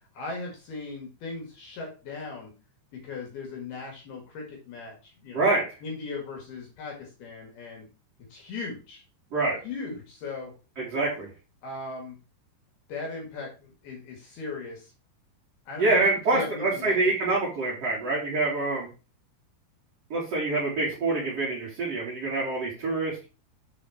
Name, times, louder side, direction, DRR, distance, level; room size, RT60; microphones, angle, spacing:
voice 1, 0.1-2.5 3.0-5.4 5.8-7.9 8.3-9.0 9.6-10.5 11.6-12.2 12.9-14.9 15.7-17.4, left 3 dB, 60° left, 0 dB, 3.0 m, -38 dB
voice 2, 5.3-5.6 9.3-9.6 10.8-11.3 15.8-18.9 20.1-23.2, right 3 dB, 40° right, -8 dB, 2.4 m, -26 dB
7.1 x 4.1 x 4.6 m, 0.32 s
omnidirectional pair, 5.9 m